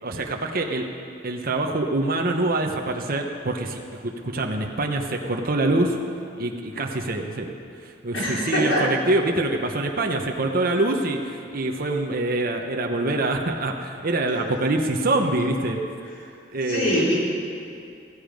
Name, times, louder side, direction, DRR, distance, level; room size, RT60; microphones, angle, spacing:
voice 1, 0.0-0.9 1.2-6.0 6.4-7.5 7.8-15.8 16.5-17.0, right 2 dB, 50° right, 2 dB, 1.0 m, -25 dB
voice 2, 8.1-8.9 14.4-14.5 16.7-17.2, left 1 dB, 75° left, -6 dB, 4.7 m, -23 dB
15.5 x 15.5 x 5.3 m, 2.5 s
head